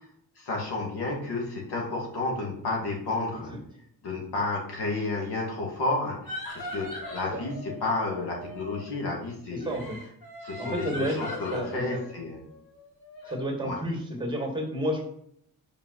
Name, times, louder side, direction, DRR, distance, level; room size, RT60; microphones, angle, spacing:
voice 1, 0.4-3.5 4.0-9.8 10.4-12.4 13.6-13.8, left 2 dB, 85° left, -1 dB, 2.3 m, -31 dB
sound 1, 6.3-8.9 9.6-13.4, left 1 dB, 60° left, 2.9 m, -40 dB
voice 2, 9.5-10.0 10.6-12.0 13.3-15.0, equal, 10° right, 1 dB, 2.1 m, -31 dB
5.6 x 5.0 x 5.7 m, 0.71 s
cardioid pair, 115°, 38 cm